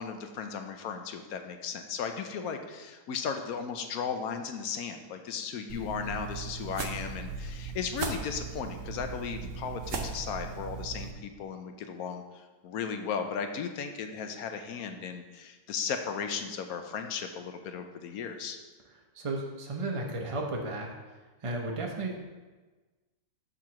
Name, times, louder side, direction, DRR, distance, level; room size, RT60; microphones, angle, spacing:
voice 1, 0.0-18.6, left 6 dB, 80° left, 6 dB, 1.2 m, -36 dB
sound 1, 5.7-11.1, right 4 dB, 60° right, 1.1 m, -38 dB
voice 2, 19.1-20.9 21.4-22.2, right 2 dB, 30° right, 0 dB, 0.6 m, -33 dB
7.3 x 3.9 x 6.1 m, 1.3 s
omnidirectional pair, 1.5 m